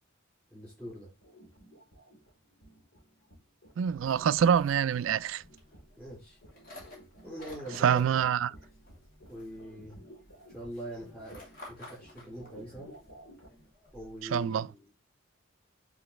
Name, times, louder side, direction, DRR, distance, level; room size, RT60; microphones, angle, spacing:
voice 1, 0.5-1.1 6.0-6.4 7.2-8.3 9.3-10.0 10.5-12.9 13.9-14.8, right 1 dB, 5° left, 4.4 m, -43 dB
sound 1, 0.6-13.7, equal, 85° left, 2.4 m, -55 dB
voice 2, 3.8-5.4 7.8-8.5 14.3-14.7, right 8 dB, 70° right, 0.3 m, -26 dB
sound 2, 3.9-14.4, left 1 dB, 45° left, 2.8 m, -54 dB
9.1 x 3.9 x 3.2 m
head